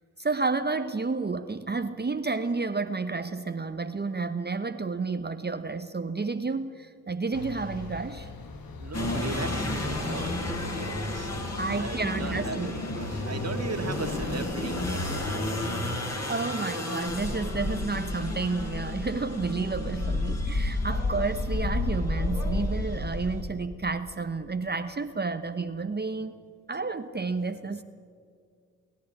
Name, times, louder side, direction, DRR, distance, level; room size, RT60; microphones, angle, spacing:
voice 1, 0.2-8.3 11.6-12.7 15.1-15.4 16.3-26.4 26.7-27.8, right 4 dB, 25° right, 9 dB, 1.0 m, -31 dB
sound 1, 7.3-14.5, left 4 dB, 60° left, 2.0 m, -40 dB
voice 2, 8.8-10.3 10.6-11.3 11.8-15.7 16.6-16.7, right 4 dB, 40° right, 6 dB, 2.2 m, -38 dB
sound 2, 8.9-23.4, left 2 dB, 40° left, 5.3 m, -31 dB
24.0 x 11.5 x 9.9 m, 2.1 s
supercardioid pair, 45°, 39 cm